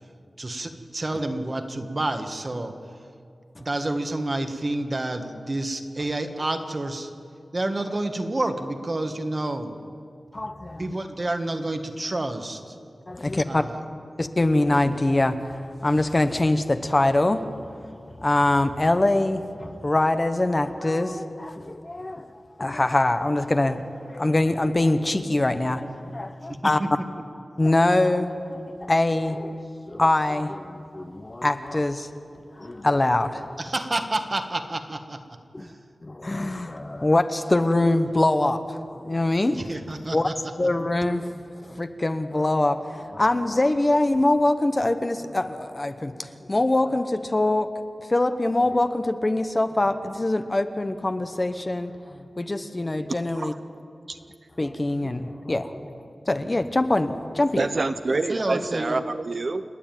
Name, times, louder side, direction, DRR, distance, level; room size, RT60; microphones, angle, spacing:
voice 1, 0.4-2.7 3.6-7.1 7.5-9.8 10.8-12.8 13.5-13.8 26.5-26.9 33.6-35.2 35.6-35.8 39.5-40.3 58.3-59.0, right 2 dB, 35° right, 1.6 m, -29 dB
voice 2, 10.3-10.9 13.1-13.6 14.2-17.5 18.2-22.3 22.6-26.8 27.6-29.6 29.9-32.1 32.6-33.6 35.5-35.7 36.0-39.7 40.1-40.3 40.6-47.7 48.1-53.5 54.6-57.7, left 2 dB, 30° left, 1.0 m, -24 dB
voice 3, 57.6-59.6, right 3 dB, 55° right, 0.7 m, -26 dB
29.0 x 9.9 x 9.1 m
wide cardioid pair, 85°, 0 cm